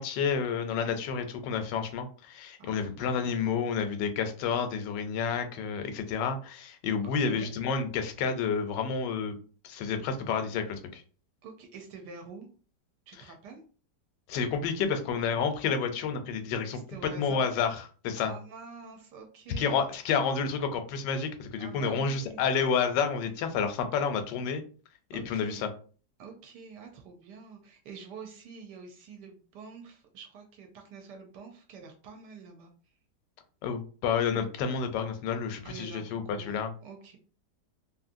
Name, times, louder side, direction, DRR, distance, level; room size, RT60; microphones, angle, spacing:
voice 1, 0.0-9.3 9.6-11.0 14.3-16.8 17.2-18.3 19.6-24.6 25.1-25.7 33.6-36.7, left 6 dB, 85° left, 7 dB, 1.2 m, -30 dB
voice 2, 2.6-3.5 7.2-7.5 11.4-12.5 13.1-13.6 16.7-17.4 18.2-19.8 21.6-22.5 25.1-25.6 26.2-32.7 35.6-37.2, right 5 dB, 80° right, 3 dB, 1.2 m, -47 dB
2.9 x 2.7 x 2.5 m, 0.39 s
omnidirectional pair, 1.9 m